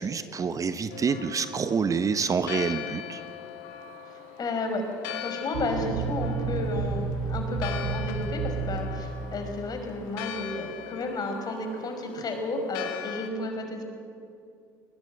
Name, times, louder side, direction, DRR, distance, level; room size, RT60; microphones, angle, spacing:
voice 1, 0.0-3.2, right 5 dB, 30° right, 11 dB, 1.1 m, -27 dB
Church bell, 0.9-13.3, left 10 dB, 70° left, 1.8 m, -40 dB
voice 2, 4.4-4.9 5.1-13.8, left 2 dB, 40° left, 4 dB, 5.3 m, -32 dB
sound 1, 5.5-10.2, right 5 dB, 70° right, 1.2 m, -32 dB
20.5 x 20.5 x 7.8 m, 2.4 s
hypercardioid pair, 60°, 10 cm